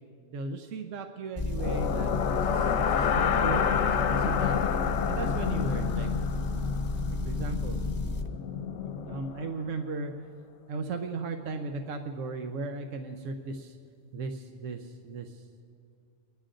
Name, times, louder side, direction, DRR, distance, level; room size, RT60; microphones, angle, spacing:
voice 1, 0.3-4.6 5.1-6.1 7.1-7.8 9.0-10.1 10.7-13.8 14.1-15.4, right 3 dB, 85° right, 5 dB, 1.2 m, -36 dB
Motor vehicle (road) / Engine, 1.4-8.3, left 2 dB, 20° left, 1.0 m, -32 dB
sound 1, 1.6-9.6, left 8 dB, 70° left, 0.9 m, -29 dB
25.0 x 10.5 x 3.8 m, 2.2 s
omnidirectional pair, 1.3 m